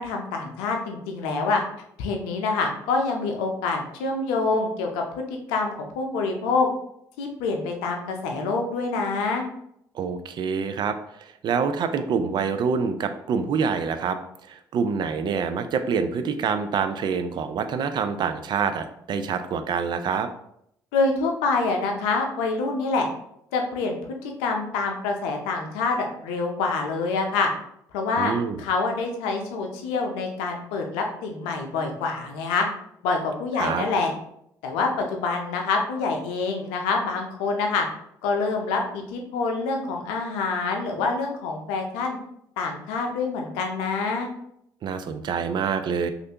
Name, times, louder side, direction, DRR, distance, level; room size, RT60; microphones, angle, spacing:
voice 1, 0.0-1.6 2.0-6.7 7.2-9.4 20.9-23.1 23.5-24.0 24.2-27.5 27.9-28.3 28.6-32.7 33.0-34.1 34.6-37.9 38.2-42.2 42.6-44.3, left 4 dB, 90° left, 2 dB, 0.6 m, -26 dB
voice 2, 9.9-14.2 14.5-20.3 28.2-28.6 33.6-33.8 44.8-46.1, right 6 dB, 55° right, 9 dB, 0.4 m, -26 dB
3.2 x 2.5 x 2.8 m, 0.74 s
supercardioid pair, 65°, 9 cm